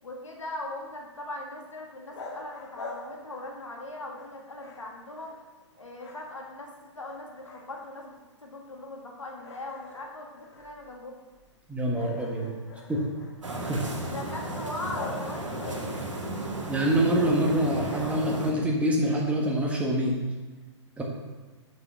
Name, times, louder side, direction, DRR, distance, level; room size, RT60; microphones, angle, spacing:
voice 1, 0.0-5.3 5.8-8.1 8.4-11.1 14.1-16.3, left 2 dB, 80° left, 0 dB, 1.6 m, -40 dB
sound 1, 2.0-3.8 4.1-5.7 5.9-6.7 7.0-8.2 8.6-8.8 9.4-16.2, left 3 dB, 60° left, 2.0 m, -45 dB
voice 2, 11.7-12.5 12.9-13.0 13.6-13.8 16.7-20.2 21.0-21.1, right 1 dB, 10° right, -2 dB, 1.5 m, -25 dB
sound 2, 13.4-18.5, right 2 dB, 80° right, 1.7 m, -34 dB
7.9 x 6.1 x 5.7 m, 1.2 s
figure-of-eight pair, 115°, 16 cm